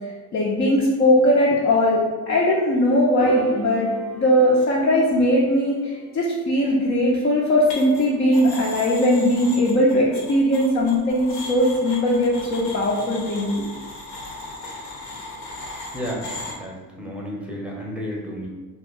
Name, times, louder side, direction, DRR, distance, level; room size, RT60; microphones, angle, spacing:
voice 1, 0.3-2.0 2.3-3.9 4.1-13.7, left 1 dB, 25° left, -4 dB, 0.5 m, -19 dB
Piano, 3.2-9.6, right 2 dB, 90° right, 1.1 m, -40 dB
sound 1, 7.7-8.0 8.3-16.5, left 2 dB, 80° left, 0.7 m, -37 dB
voice 2, 15.9-18.5, equal, ahead, -2 dB, 0.8 m, -32 dB
2.5 x 2.3 x 3.7 m, 1.3 s
hypercardioid pair, 55°, 50 cm